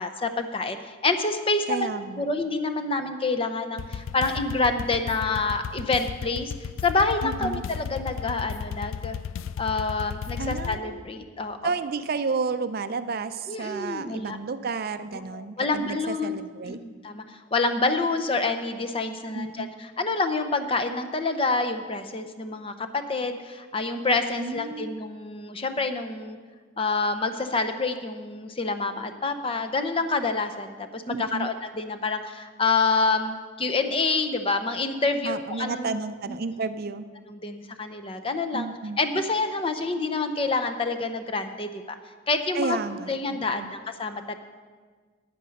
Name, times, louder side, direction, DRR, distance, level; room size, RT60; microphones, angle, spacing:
voice 1, 0.0-1.9 2.2-6.5 6.8-9.2 9.6-11.7 13.5-14.4 15.3-16.4 16.7-26.4 26.8-36.0 36.5-36.6 37.3-38.7 39.0-42.0 42.3-42.8 43.1-44.3, left 3 dB, 30° left, 7 dB, 0.7 m, -27 dB
voice 2, 1.7-2.2 7.2-7.6 10.4-11.0 11.6-16.8 19.3-19.7 24.4-25.0 31.1-31.5 35.2-37.0 38.5-39.0 42.5-43.7, right 4 dB, 50° right, 11 dB, 0.4 m, -31 dB
sound 1, 3.8-10.8, left 7 dB, 85° left, 0.3 m, -35 dB
9.6 x 9.3 x 6.5 m, 1.5 s
head